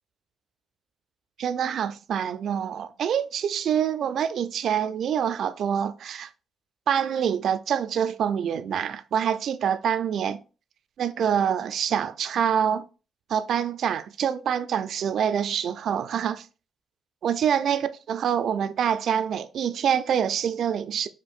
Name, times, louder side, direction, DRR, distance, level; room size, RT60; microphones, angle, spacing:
voice 1, 1.4-6.3 6.9-10.4 11.0-12.8 13.3-16.5 17.2-17.8 18.1-21.1, right 8 dB, 65° right, 0.3 m, -26 dB
4.4 x 2.5 x 2.4 m
cardioid pair, 90°, 0 cm